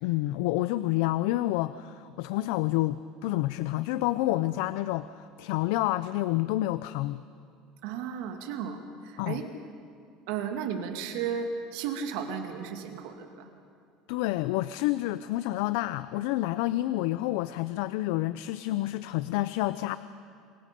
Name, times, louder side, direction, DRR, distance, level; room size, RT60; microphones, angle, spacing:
voice 1, 0.0-7.2 9.2-9.4 14.1-20.0, left 16 dB, 75° left, 15 dB, 0.5 m, -29 dB
voice 2, 7.8-9.5 10.3-13.5, right 7 dB, 75° right, 5 dB, 2.3 m, -34 dB
26.5 x 22.5 x 5.3 m, 2.5 s
cardioid pair, 150°, 0 cm